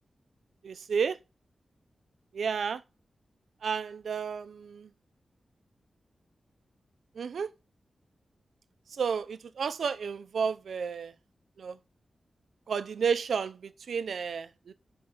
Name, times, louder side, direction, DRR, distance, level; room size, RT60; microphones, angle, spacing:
voice 1, 0.6-1.2 2.3-2.8 3.6-4.9 7.2-7.5 9.0-11.1 11.6-11.8 12.7-14.7, right 6 dB, 90° right, 0.6 m, -31 dB
5.6 x 5.2 x 5.2 m
wide cardioid pair, 155°, 0 cm